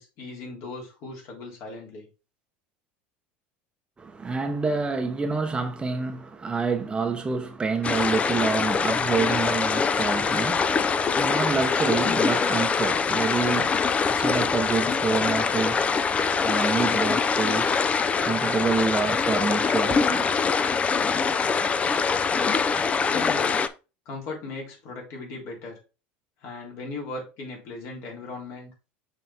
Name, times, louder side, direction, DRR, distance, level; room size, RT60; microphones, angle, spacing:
voice 1, 0.0-2.1 23.0-23.5 24.0-25.8 26.4-28.7, left 3 dB, 55° left, 3.4 m, -38 dB
voice 2, 4.0-17.8 18.2-20.3, right 4 dB, 20° right, 0.8 m, -28 dB
sound 1, 7.8-23.7, left 5 dB, 25° left, 0.5 m, -24 dB
6.3 x 3.9 x 4.2 m
supercardioid pair, 115°, 5 cm